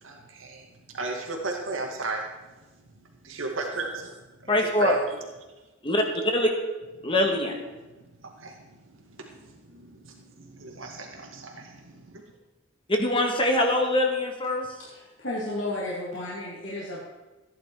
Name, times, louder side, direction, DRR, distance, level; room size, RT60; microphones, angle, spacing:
voice 1, 0.0-2.3 3.0-5.0 7.9-12.2, right 3 dB, 85° right, 1 dB, 2.1 m, -36 dB
voice 2, 4.5-5.0 5.8-6.5 7.0-7.5 12.9-14.7, left 1 dB, 25° left, 2 dB, 1.7 m, -23 dB
voice 3, 14.8-17.0, left 1 dB, 70° left, -5 dB, 2.8 m, -33 dB
15.0 x 10.0 x 4.8 m, 1.1 s
head